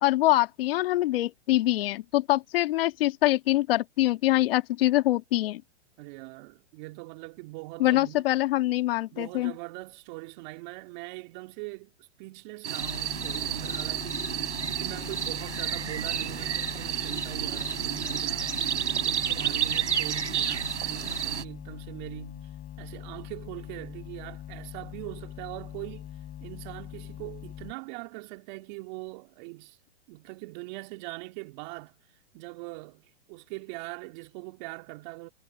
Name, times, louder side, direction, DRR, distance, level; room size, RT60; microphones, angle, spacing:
voice 1, 0.0-5.6 7.8-9.5, left 16 dB, 55° left, 1.7 m, -24 dB
voice 2, 6.0-8.2 9.1-22.5 22.8-26.1 26.4-29.8 30.1-31.9 32.3-35.3, right 25 dB, 40° right, 2.5 m, -42 dB
sound 1, 12.6-21.4, right 8 dB, 90° right, 5.0 m, -30 dB
sound 2, 12.8-27.7, left 12 dB, 25° left, 7.6 m, -43 dB
hypercardioid pair, 135°, 34 cm